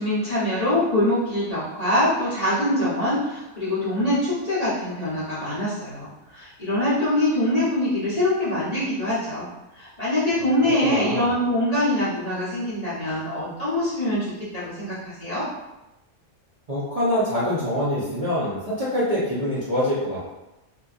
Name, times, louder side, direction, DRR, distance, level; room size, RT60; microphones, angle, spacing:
voice 1, 0.0-9.5 9.7-15.4, left 1 dB, 35° left, -12 dB, 0.8 m, -24 dB
voice 2, 10.8-11.3 16.7-20.3, equal, 35° right, -11 dB, 0.6 m, -25 dB
2.7 x 2.6 x 2.4 m, 0.98 s
omnidirectional pair, 1.5 m